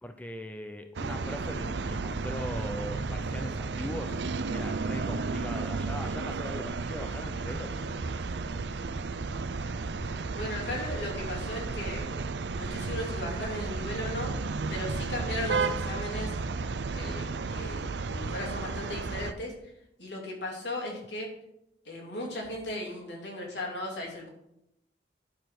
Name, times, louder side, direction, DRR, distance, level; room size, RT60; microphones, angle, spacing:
voice 1, 0.0-4.2 4.5-7.8, equal, 10° left, 6 dB, 0.6 m, -40 dB
sound 1, 0.9-19.3, right 4 dB, 75° right, 0.6 m, -33 dB
voice 2, 7.4-8.0 10.3-12.1 12.6-14.3 14.7-16.4 16.9-17.8 18.1-19.7 20.0-21.3 21.8-24.3, left 1 dB, 80° left, -1 dB, 3.4 m, -37 dB
10.0 x 6.9 x 6.0 m, 0.81 s
head